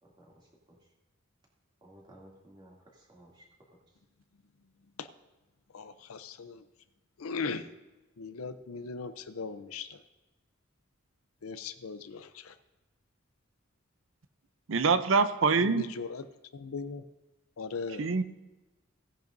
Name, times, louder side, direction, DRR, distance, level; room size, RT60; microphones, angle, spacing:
voice 1, 0.0-0.8 1.8-3.5 3.7-3.8, right 1 dB, 25° right, -3 dB, 2.6 m, -56 dB
voice 2, 5.7-6.6 7.2-7.7 8.2-10.0 11.4-12.5 15.5-16.2 16.5-17.0 17.6-18.1, left 4 dB, 85° left, 11 dB, 0.6 m, -38 dB
voice 3, 14.7-15.9 18.0-18.2, right 4 dB, 65° right, 12 dB, 0.6 m, -25 dB
17.0 x 10.5 x 2.7 m, 1.1 s
head